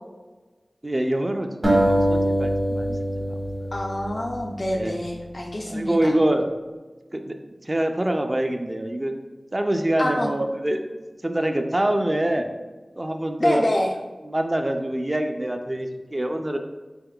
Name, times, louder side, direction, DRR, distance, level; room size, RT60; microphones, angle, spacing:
voice 1, 0.8-3.7 4.7-4.9 5.7-6.5 7.1-7.4 7.6-9.1 9.5-10.8 11.2-12.5 13.0-13.7 14.2-16.6, right 1 dB, 35° right, 4 dB, 0.4 m, -25 dB
sound 1, 1.6-4.9, right 1 dB, 55° right, 1.0 m, -23 dB
voice 2, 3.7-6.1 10.0-10.3 13.4-13.9, left 1 dB, 50° left, 0 dB, 0.4 m, -26 dB
3.8 x 3.5 x 2.3 m, 1.2 s
wide cardioid pair, 40°, 0 cm